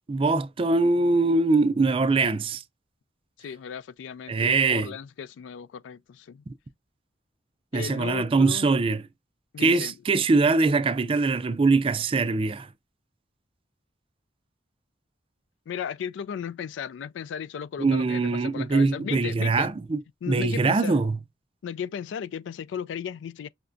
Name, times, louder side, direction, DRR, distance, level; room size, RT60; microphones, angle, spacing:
voice 1, 0.1-2.6 4.3-4.9 7.7-9.0 9.6-12.7 17.8-20.0 20.3-21.2, right 3 dB, 30° right, 0.4 m, -22 dB
voice 2, 3.4-6.4 7.7-8.7 9.5-10.0 15.7-19.7 20.2-21.0 21.6-23.5, left 8 dB, 80° left, 0.3 m, -35 dB
5.7 x 2.2 x 2.5 m
head